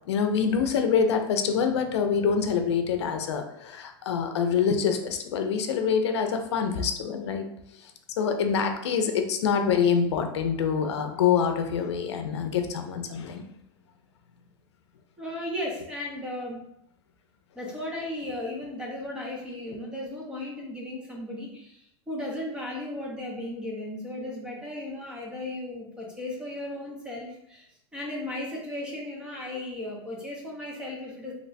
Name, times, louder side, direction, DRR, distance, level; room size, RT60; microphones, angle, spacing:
voice 1, 0.1-7.4 7.8-7.9 8.2-13.4, left 6 dB, 90° left, 6 dB, 0.5 m, -25 dB
voice 2, 15.2-16.7 17.6-27.7 27.9-31.3, left 1 dB, 5° right, -3 dB, 0.6 m, -35 dB
2.9 x 2.2 x 4.0 m, 0.76 s
supercardioid pair, 160°, 14 cm